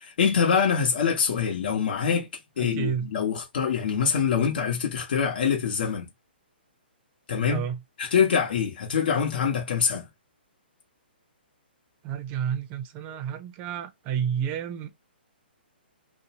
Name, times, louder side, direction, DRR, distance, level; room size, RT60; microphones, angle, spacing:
voice 1, 0.0-2.3 2.6-6.1 7.3-7.6 8.0-10.1, left 7 dB, 60° left, 1.0 m, -24 dB
voice 2, 2.6-3.1 7.5-7.8 12.0-14.9, right 8 dB, 25° right, 0.6 m, -30 dB
2.6 x 2.1 x 2.8 m
hypercardioid pair, 145°, 6 cm